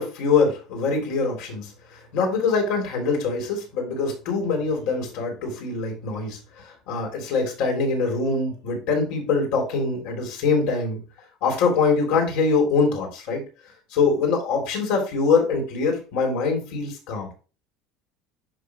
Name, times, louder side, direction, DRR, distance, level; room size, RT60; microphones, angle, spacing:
voice 1, 0.0-1.7 2.1-11.0 11.4-13.4 13.9-17.4, left 4 dB, 70° left, 1 dB, 3.1 m, -23 dB
10.5 x 3.6 x 3.0 m, 0.35 s
cardioid pair, 155°, 0 cm